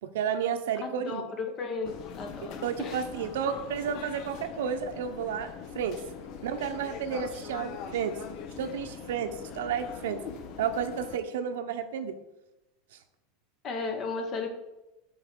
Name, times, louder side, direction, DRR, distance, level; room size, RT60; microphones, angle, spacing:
voice 1, 0.0-1.2 2.6-6.0 6.4-8.2 8.6-10.2 10.6-12.1 12.9-13.0, right 7 dB, 85° right, 8 dB, 0.8 m, -32 dB
voice 2, 0.8-3.0 10.2-10.3 13.6-14.5, left 4 dB, 35° left, 6 dB, 1.2 m, -35 dB
sound 1, 1.8-11.2, left 7 dB, 50° left, 0.7 m, -42 dB
6.6 x 4.0 x 6.1 m, 0.96 s
supercardioid pair, 140°, 0 cm